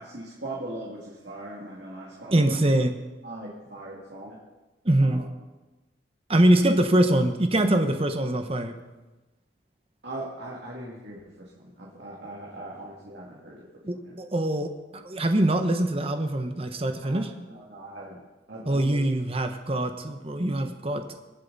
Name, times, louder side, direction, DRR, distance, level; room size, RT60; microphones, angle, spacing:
voice 1, 0.0-2.7 3.2-4.4 5.0-5.2 10.0-14.2 17.0-17.2 17.5-18.2 18.5-19.1, right 1 dB, 65° right, -4 dB, 2.4 m, -40 dB
voice 2, 2.3-2.9 4.8-5.2 6.3-8.7 13.8-17.3 18.7-21.1, right 1 dB, 30° right, 6 dB, 1.0 m, -23 dB
22.5 x 7.6 x 4.1 m, 1.1 s
head